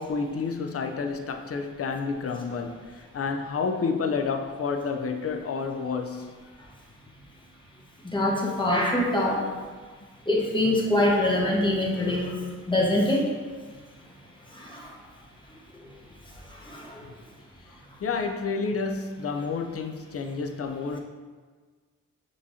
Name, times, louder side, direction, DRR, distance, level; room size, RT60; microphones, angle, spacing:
voice 1, 0.0-6.3 18.0-21.0, left 4 dB, 40° left, 0.6 m, -30 dB
voice 2, 8.0-9.4 10.3-12.4 12.7-13.3 14.5-14.9 15.8-15.9 16.5-17.0, left 1 dB, 15° left, 1.3 m, -24 dB
5.9 x 3.0 x 2.8 m
supercardioid pair, 40°, 37 cm